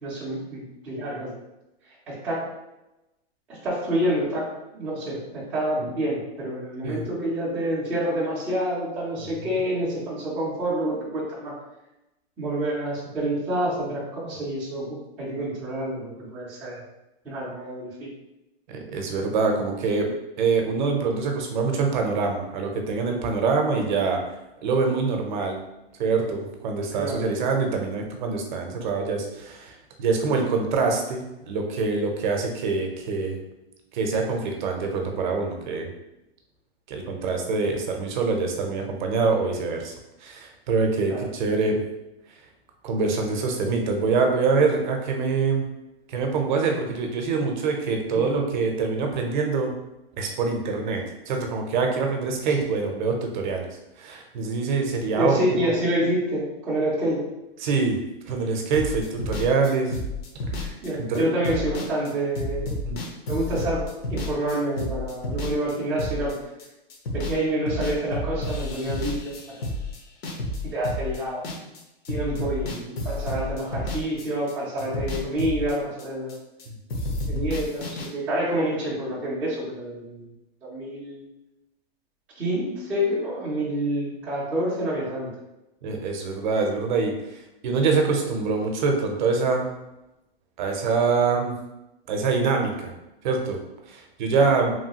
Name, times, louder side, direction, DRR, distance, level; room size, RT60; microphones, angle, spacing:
voice 1, 0.0-1.3 2.1-2.5 3.5-11.5 12.4-16.8 17.2-18.1 26.9-27.3 41.1-41.2 48.1-48.5 55.1-57.2 60.8-62.8 63.3-66.4 67.1-69.7 70.6-71.4 72.1-76.3 77.3-80.3 80.6-81.2 82.4-85.3, right 1 dB, 5° right, -9 dB, 0.3 m, -28 dB
voice 2, 18.7-20.1 20.4-24.2 24.6-25.6 26.0-33.4 33.9-35.9 36.9-39.9 40.2-41.8 42.8-45.7 46.1-49.7 50.2-53.7 54.0-55.3 55.6-55.7 57.6-58.0 58.3-60.0 60.6-61.2 62.8-63.0 85.8-89.7 90.6-91.5 92.1-92.9 93.2-93.6 93.9-94.7, right 4 dB, 50° right, 3 dB, 0.6 m, -25 dB
sound 1, 58.7-67.4 67.7-71.8 72.0-74.5 74.8-76.6 76.9-78.1, left 1 dB, 75° left, 0.9 m, -31 dB
3.0 x 2.3 x 2.8 m, 0.92 s
hypercardioid pair, 150°, 31 cm